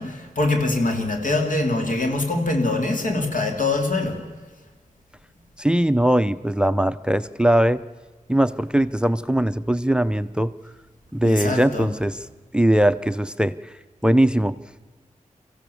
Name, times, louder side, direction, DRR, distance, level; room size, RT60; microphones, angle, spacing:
voice 1, 0.0-4.2 11.2-11.9, left 2 dB, 75° left, 3 dB, 3.2 m, -23 dB
voice 2, 5.6-7.8 8.3-10.5 11.1-12.2 12.5-13.7 14.0-14.6, right 1 dB, 5° right, 15 dB, 0.5 m, -20 dB
24.5 x 15.5 x 7.1 m, 1.4 s
wide cardioid pair, 80°, 14 cm